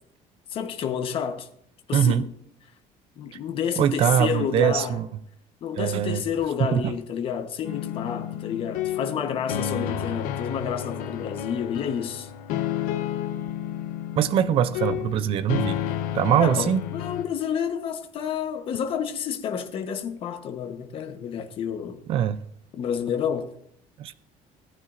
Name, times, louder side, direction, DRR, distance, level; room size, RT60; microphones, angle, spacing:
voice 1, 0.5-1.5 1.9-2.3 3.2-5.0 5.6-12.3 16.4-22.0 22.8-23.5, left 8 dB, 40° left, 1.1 m, -29 dB
voice 2, 1.9-2.2 3.8-5.1 5.8-6.2 6.7-6.9 14.2-15.8 16.1-16.8 22.1-22.4 24.0-24.2, right 9 dB, 40° right, 0.5 m, -22 dB
sound 1, 7.6-17.2, left 10 dB, 70° left, 1.0 m, -31 dB
18.0 x 9.2 x 2.5 m
cardioid pair, 170°, 14 cm